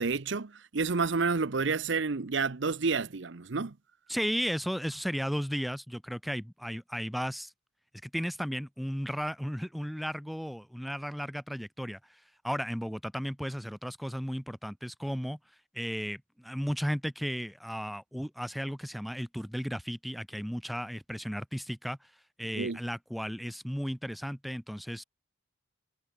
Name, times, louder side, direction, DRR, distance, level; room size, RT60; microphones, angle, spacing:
voice 1, 0.0-3.7 22.6-22.8, right 4 dB, 65° right, 0.8 m, -29 dB
voice 2, 4.1-7.5 8.0-15.4 15.7-22.1 22.4-25.0, equal, ahead, 3.3 m, -35 dB
head